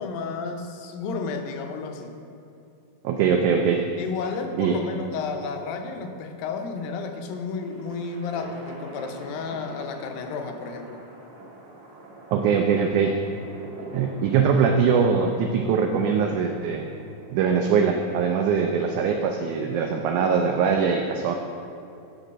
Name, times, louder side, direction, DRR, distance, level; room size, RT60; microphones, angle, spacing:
voice 1, 0.0-2.2 4.0-11.0, left 4 dB, 85° left, 5 dB, 2.5 m, -32 dB
voice 2, 3.0-3.9 4.6-4.8 12.3-13.2 13.9-16.9 17.3-21.3, right 6 dB, 85° right, 4 dB, 1.7 m, -22 dB
sound 1, 7.3-17.8, right 1 dB, 55° right, 1.7 m, -43 dB
8.5 x 5.3 x 6.1 m, 2.6 s
omnidirectional pair, 4.0 m